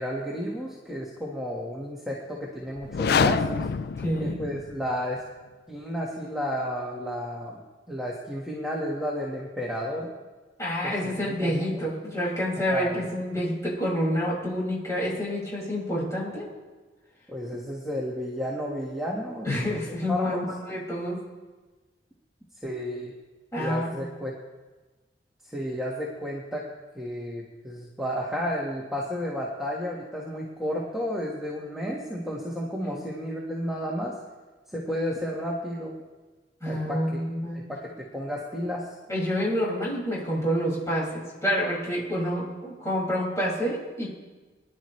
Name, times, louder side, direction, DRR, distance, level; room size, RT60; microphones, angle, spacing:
voice 1, 0.0-3.7 4.2-5.2 5.7-7.6 7.9-10.1 10.8-11.1 11.4-11.8 12.7-13.0 17.3-19.6 20.1-20.4 22.6-23.1 23.6-24.4 25.4-26.6 26.9-34.2 34.7-36.0 36.7-37.2 37.5-38.9, equal, 5° right, -5 dB, 1.5 m, -32 dB
sound 1, 2.8-4.9, left 6 dB, 60° left, 0.4 m, -26 dB
voice 2, 4.0-4.4 10.6-16.5 19.4-21.2 23.5-23.9 32.8-33.0 36.6-37.6 39.1-44.1, equal, 15° left, -6 dB, 5.9 m, -28 dB
24.0 x 11.0 x 3.3 m, 1.2 s
head